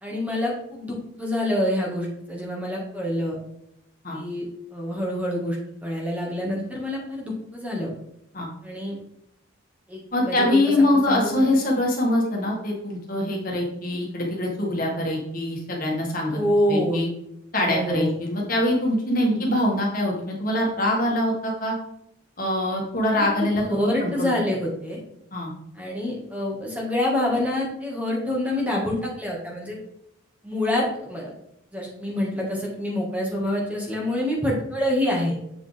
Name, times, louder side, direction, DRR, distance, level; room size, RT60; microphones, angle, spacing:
voice 1, 0.0-3.4 4.1-7.9 8.6-9.0 9.9-10.6 11.1-11.4 16.3-17.0 17.6-18.2 19.1-19.5 23.2-23.3 23.7-25.0 25.8-29.8 30.4-31.3 31.7-35.4, left 1 dB, 5° right, -3 dB, 1.7 m, -26 dB
voice 2, 10.1-16.4 16.7-17.1 17.5-21.8 22.4-24.3 25.3-25.5, left 1 dB, 45° left, -2 dB, 1.9 m, -24 dB
7.7 x 5.0 x 3.4 m, 0.79 s
head